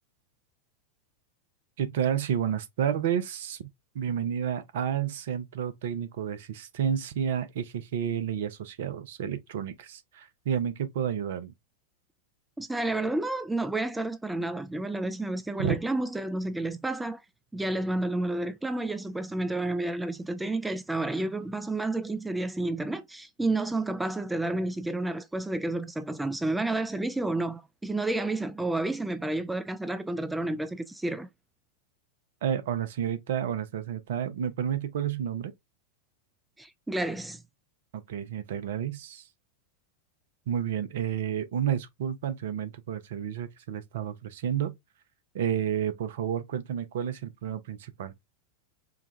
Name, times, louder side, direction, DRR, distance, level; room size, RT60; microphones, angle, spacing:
voice 1, 1.8-3.7 3.9-11.5 15.6-15.8 32.4-35.5 37.9-39.2 40.5-44.7 45.3-48.1, right 9 dB, 55° right, 0.6 m, -30 dB
voice 2, 12.6-17.2 17.5-31.3 36.6-37.4, right 2 dB, 5° right, 0.3 m, -30 dB
4.7 x 2.2 x 2.4 m
figure-of-eight pair, 90°, 0 cm